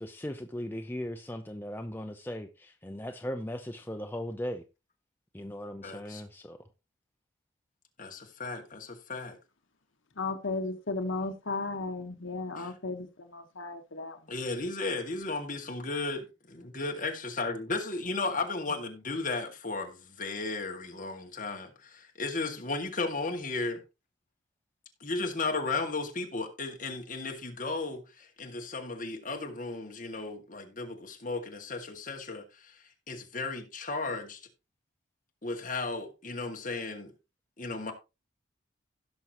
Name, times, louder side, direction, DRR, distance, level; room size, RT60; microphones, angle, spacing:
voice 1, 0.0-4.6 5.3-6.6, equal, 10° left, 0.6 m, -38 dB
voice 2, 5.8-6.2 8.0-9.4 12.6-12.7 14.3-23.8 25.0-34.4 35.4-37.1 37.6-37.9, left 3 dB, 40° left, 2.1 m, -35 dB
voice 3, 10.2-14.2, left 3 dB, 70° left, 1.3 m, -35 dB
16.5 x 6.1 x 3.0 m
head